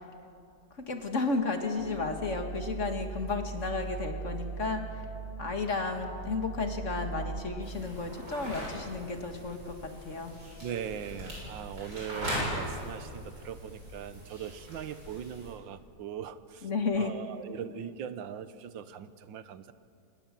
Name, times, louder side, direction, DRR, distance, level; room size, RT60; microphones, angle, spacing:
voice 1, 0.9-4.8 5.4-10.3 16.6-17.1, left 3 dB, 40° left, 5 dB, 2.0 m, -32 dB
sound 1, 1.8-7.4, right 5 dB, 25° right, 1.1 m, -40 dB
sound 2, 7.6-15.5, equal, 60° right, 7.8 m, -40 dB
voice 2, 10.6-16.7 17.0-19.7, right 8 dB, 85° right, 13 dB, 1.6 m, -40 dB
25.5 x 19.5 x 7.5 m, 2.4 s
omnidirectional pair, 2.0 m